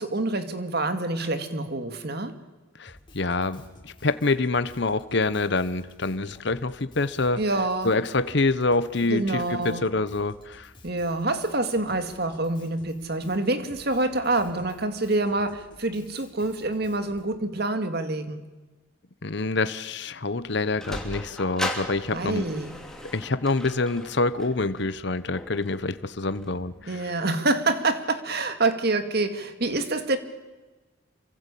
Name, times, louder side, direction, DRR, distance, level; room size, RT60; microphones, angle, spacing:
voice 1, 0.0-2.4 7.4-7.9 9.1-9.9 10.8-18.4 22.1-22.8 26.9-30.2, right 2 dB, 50° right, 2.2 m, -26 dB
voice 2, 2.8-7.4 7.8-10.7 19.2-22.5 23.1-27.1, left 3 dB, 55° left, 1.0 m, -26 dB
Drum kit, 2.9-17.3, left 1 dB, 25° left, 6.0 m, -53 dB
Sliding door, 20.3-26.9, left 1 dB, 5° left, 2.9 m, -38 dB
27.5 x 24.5 x 8.5 m
head